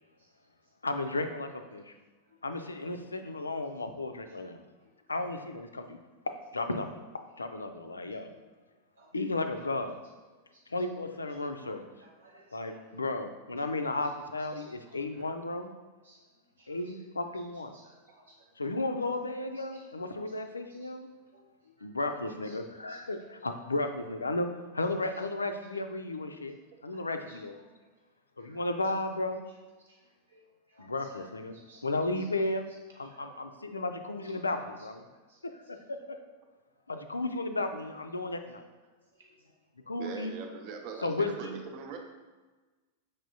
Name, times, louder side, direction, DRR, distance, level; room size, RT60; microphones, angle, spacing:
voice 1, 0.8-1.9 2.4-4.6 5.1-6.0 6.3-6.9 7.1-8.3 9.1-10.0 10.7-11.9 12.5-15.7 16.7-17.7 18.6-21.1 21.8-26.5 26.8-27.6 28.4-29.4 30.8-31.5 31.8-32.7 33.0-35.0 35.4-36.2 36.9-38.7 39.9-40.3 41.0-41.6, left 2 dB, 80° left, 7 dB, 0.3 m, -34 dB
voice 2, 12.0-12.8 14.4-15.2 16.0-16.2 16.6-17.0 17.7-18.5 19.6-19.8 20.3-20.4 20.7-20.9 21.3-21.9 22.4-23.0 26.9-27.4 27.7-27.9 28.4-28.6 29.8-31.2 31.5-31.8 32.2-32.3 33.0-33.2 34.2-34.4 35.3-35.4 35.8-35.9 38.2-38.3 39.1-39.4 39.9-40.0, right 2 dB, 70° right, -2 dB, 1.2 m, -61 dB
voice 3, 40.0-42.0, right 5 dB, 45° right, 4 dB, 0.5 m, -41 dB
5.3 x 3.4 x 2.7 m, 1.3 s
figure-of-eight pair, 90°, 0 cm